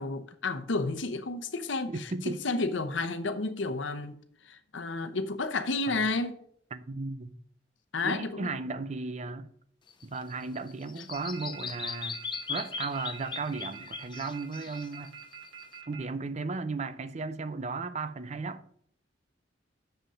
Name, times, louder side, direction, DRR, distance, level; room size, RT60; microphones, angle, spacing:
voice 1, 0.0-6.4 7.9-8.6, left 3 dB, 75° left, 0.9 m, -32 dB
voice 2, 1.9-2.4 5.9-6.0 6.7-7.4 8.0-9.5 10.0-12.2 12.5-15.2 15.9-18.6, right 3 dB, 40° right, 0.6 m, -35 dB
Bird vocalization bird call bird song, 9.9-15.8, left 6 dB, 25° left, 0.6 m, -39 dB
sound 1, 11.1-16.0, right 8 dB, 75° right, 2.6 m, -46 dB
7.0 x 6.4 x 5.5 m
head